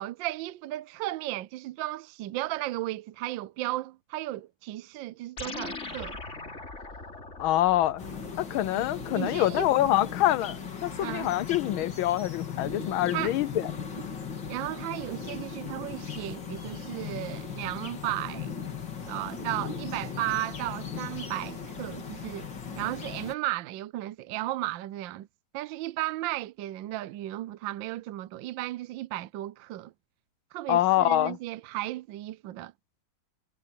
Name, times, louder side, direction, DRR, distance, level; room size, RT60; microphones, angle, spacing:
voice 1, 0.0-6.2 9.1-9.9 11.0-11.3 13.1-13.4 14.5-18.5 19.1-22.5 22.8-25.3 25.5-29.9 30.5-32.7, right 16 dB, 75° right, 1.3 m, -35 dB
sound 1, 5.4-10.0, left 3 dB, 35° left, 3.1 m, -42 dB
voice 2, 7.4-8.0 8.4-13.6 30.7-31.4, left 14 dB, 80° left, 1.5 m, -25 dB
sound 2, 8.0-23.3, left 6 dB, 60° left, 3.4 m, -38 dB
omnidirectional pair, 2.2 m